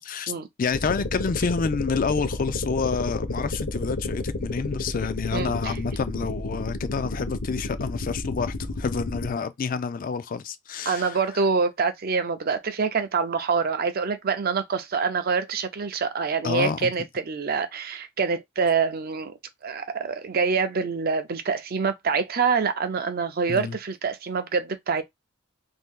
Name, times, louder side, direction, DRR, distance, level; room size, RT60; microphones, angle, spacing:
voice 1, 0.0-0.3 0.6-11.2 16.4-16.9 23.5-23.8, left 5 dB, 45° left, 0.4 m, -28 dB
sound 1, 0.7-9.3, left 2 dB, 65° left, 0.9 m, -31 dB
voice 2, 5.3-5.8 10.9-19.3 19.6-25.0, right 5 dB, 45° right, 0.5 m, -26 dB
2.7 x 2.7 x 3.6 m
head